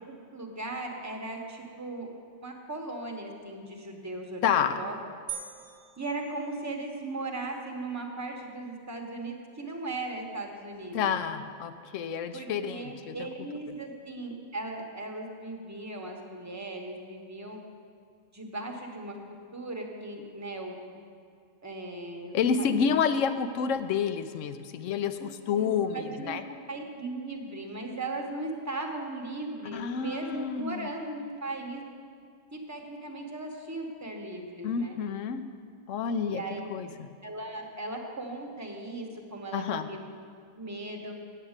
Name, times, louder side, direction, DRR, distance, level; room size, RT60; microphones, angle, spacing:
voice 1, 0.0-2.1 2.4-4.9 6.0-11.2 12.3-17.6 18.3-19.2 19.5-20.8 21.6-23.1 25.2-31.8 32.5-35.0 36.3-36.7 37.2-40.0 40.5-41.1, right 2 dB, 15° right, 2 dB, 1.0 m, -38 dB
voice 2, 4.4-4.8 10.9-13.2 22.3-25.2 25.5-26.4 29.7-30.9 34.6-35.4 35.9-36.4 36.7-37.1 39.5-39.9, left 7 dB, 75° left, 10 dB, 0.9 m, -29 dB
sound 1, 5.3-7.1, right 8 dB, 45° right, 1.1 m, -42 dB
8.8 x 8.4 x 6.5 m, 2.3 s
omnidirectional pair, 1.4 m